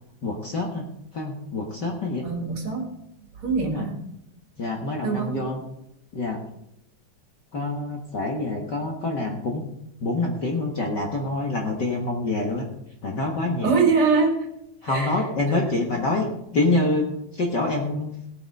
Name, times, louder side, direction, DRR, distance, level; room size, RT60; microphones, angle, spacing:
voice 1, 0.2-0.8 1.1-2.2 3.6-3.9 4.6-5.6 6.1-6.4 7.5-9.6 10.0-12.7 13.0-13.7 14.8-17.1 17.3-18.1, left 2 dB, 45° left, 0 dB, 1.7 m, -26 dB
voice 2, 2.2-2.9 3.4-4.1 5.0-5.6 13.6-14.3 14.8-15.2, right 4 dB, 50° right, 3 dB, 2.6 m, -23 dB
17.5 x 8.0 x 5.4 m, 0.79 s
omnidirectional pair, 3.3 m